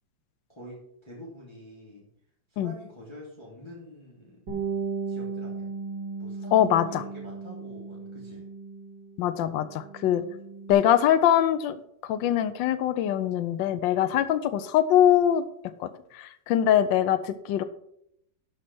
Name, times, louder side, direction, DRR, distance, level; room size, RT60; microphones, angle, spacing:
voice 1, 0.5-2.1 2.5-4.4 5.1-5.7 6.2-8.4 14.0-14.2, equal, 15° left, -5 dB, 2.8 m, -46 dB
Bass guitar, 4.5-9.2 9.5-10.7, right 5 dB, 65° right, 4.0 m, -36 dB
voice 2, 6.5-7.0 9.2-10.2 10.7-15.4 15.8-17.6, left 10 dB, 80° left, 11 dB, 1.4 m, -23 dB
12.5 x 5.6 x 6.1 m, 0.72 s
omnidirectional pair, 2.0 m